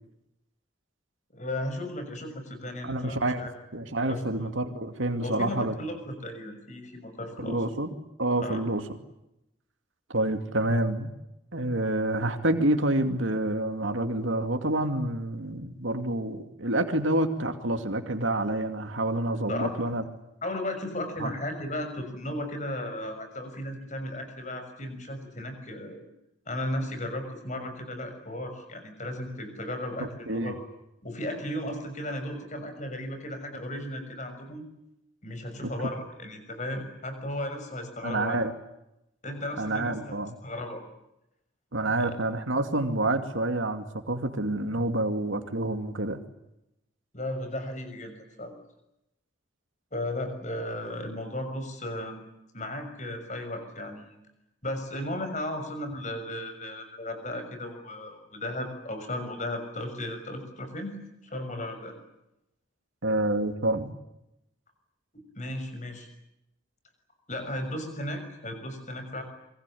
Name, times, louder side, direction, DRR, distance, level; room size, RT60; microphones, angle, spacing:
voice 1, 1.3-3.5 4.1-4.5 5.2-7.6 8.4-8.6 19.5-19.7 20.4-26.0 26.5-30.6 31.0-34.7 35.2-38.4 39.2-40.2 40.4-40.8 42.0-42.1 47.1-48.5 49.9-52.2 52.5-54.2 54.6-61.0 61.2-61.9 65.1-66.1 67.3-69.2, left 1 dB, 35° left, 7 dB, 6.5 m, -35 dB
voice 2, 2.8-5.7 7.4-7.9 8.2-8.8 10.1-11.1 11.5-20.0 21.2-21.3 30.3-30.5 38.0-38.5 39.6-40.3 41.7-46.2 63.0-63.9, right 1 dB, 80° right, 6 dB, 2.5 m, -28 dB
27.0 x 24.5 x 8.6 m, 0.87 s
head